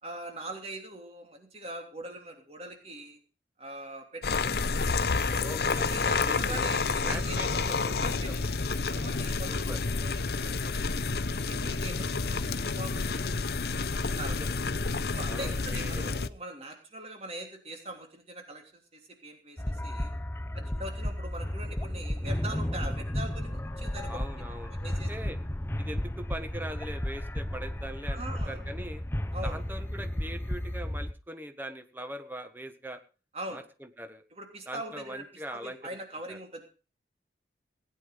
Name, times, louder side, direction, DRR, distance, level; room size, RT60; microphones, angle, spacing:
voice 1, 0.0-3.2 3.6-4.7 5.3-7.4 8.0-8.4 8.8-11.1 11.5-13.3 14.1-14.3 15.1-18.6 18.9-20.1 20.6-24.2 24.7-25.1 28.1-28.6 29.3-29.6 33.3-33.6 34.3-35.2 35.5-36.7, right 1 dB, 35° right, 3 dB, 3.1 m, -42 dB
sound 1, 4.2-16.3, left 4 dB, 60° left, 0.7 m, -29 dB
voice 2, 5.4-6.6 7.0-8.4 9.5-9.8 14.2-14.5 15.3-16.1 24.1-25.4 25.8-29.0 29.4-33.0 33.5-34.2 34.7-35.8 36.3-36.4, right 1 dB, 10° right, 7 dB, 1.5 m, -41 dB
sound 2, 19.6-31.1, left 1 dB, 15° left, 0.6 m, -33 dB
17.5 x 9.5 x 5.3 m, 0.36 s
head